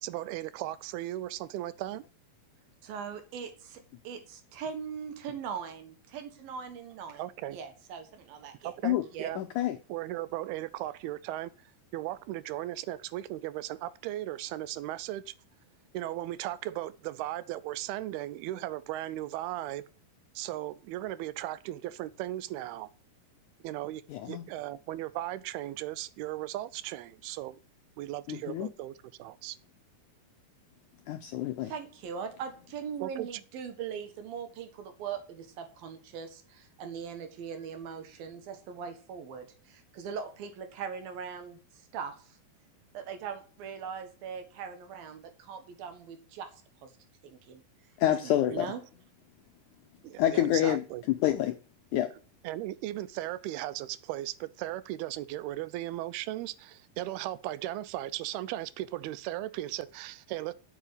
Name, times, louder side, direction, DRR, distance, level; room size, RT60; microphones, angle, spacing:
voice 1, 0.0-2.0 7.2-7.6 8.6-9.4 9.9-15.3 15.9-19.8 20.4-22.9 23.6-27.6 28.0-29.6 33.0-33.3 48.5-48.6 50.0-51.0 52.4-60.5, right 15 dB, 90° right, 2.6 m, -37 dB
voice 2, 2.8-7.2 7.5-8.8 9.1-9.3 31.6-41.6 41.9-42.2 42.9-46.5 46.8-46.9 47.2-47.6 48.1-48.8, right 7 dB, 70° right, 3.3 m, -40 dB
voice 3, 9.4-9.8 24.1-24.5 28.3-28.7 31.1-31.7 48.0-48.7 50.2-51.5 51.9-52.1, left 12 dB, 80° left, 1.8 m, -28 dB
9.0 x 7.3 x 8.6 m
omnidirectional pair, 4.4 m